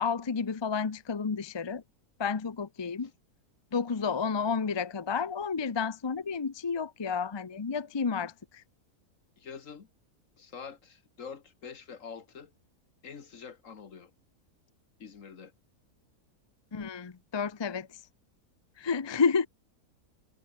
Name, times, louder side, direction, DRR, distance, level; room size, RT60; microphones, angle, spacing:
voice 1, 0.0-1.8 2.2-3.1 3.7-8.6 16.7-17.9 18.8-19.5, left 5 dB, 40° left, 0.4 m, -31 dB
voice 2, 9.4-9.9 10.4-12.5 13.0-14.1 15.0-15.5, left 6 dB, 55° left, 1.8 m, -45 dB
omnidirectional pair, 1.6 m